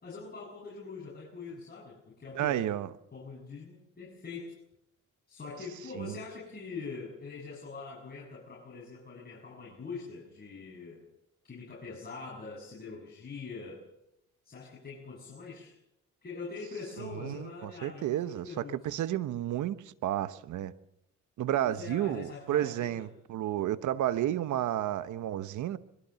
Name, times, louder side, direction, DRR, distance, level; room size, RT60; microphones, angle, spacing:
voice 1, 0.0-2.8 3.1-4.6 5.3-11.1 11.4-13.9 14.4-15.8 16.2-18.9 21.6-23.1, left 4 dB, 30° left, 7.0 m, -43 dB
voice 2, 2.3-2.9 6.0-6.2 17.2-18.5 18.7-19.8 20.0-20.7 21.4-25.8, right 12 dB, 75° right, 1.1 m, -31 dB
22.5 x 21.0 x 7.0 m
cardioid pair, 90°, 30 cm